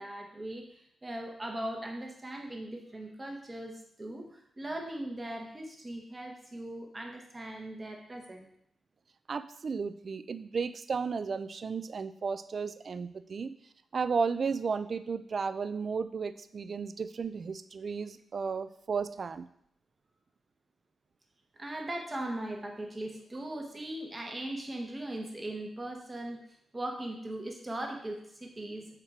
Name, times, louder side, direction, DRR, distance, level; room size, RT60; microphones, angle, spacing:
voice 1, 0.0-8.5 21.6-26.4 26.7-28.9, right 1 dB, 15° right, 3 dB, 0.9 m, -39 dB
voice 2, 9.3-13.5 13.9-19.5, right 5 dB, 40° right, 12 dB, 0.3 m, -34 dB
6.5 x 4.3 x 4.9 m, 0.69 s
wide cardioid pair, 170°, 0 cm